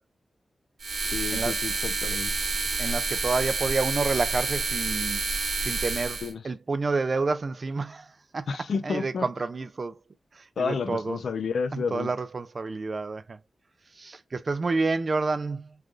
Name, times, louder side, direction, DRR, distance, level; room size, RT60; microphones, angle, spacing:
sound 1, 0.8-6.3, right 3 dB, 75° right, 0.9 m, -29 dB
voice 1, 1.1-2.3 6.2-6.5 8.5-9.3 10.6-12.1, left 5 dB, 80° left, 0.5 m, -31 dB
voice 2, 2.8-5.2 5.6-8.1 8.3-8.5 8.8-10.0 10.4-11.2 11.7-13.4 14.0-15.7, right 3 dB, 45° right, 0.4 m, -29 dB
3.7 x 3.2 x 2.4 m
wide cardioid pair, 120°, 0 cm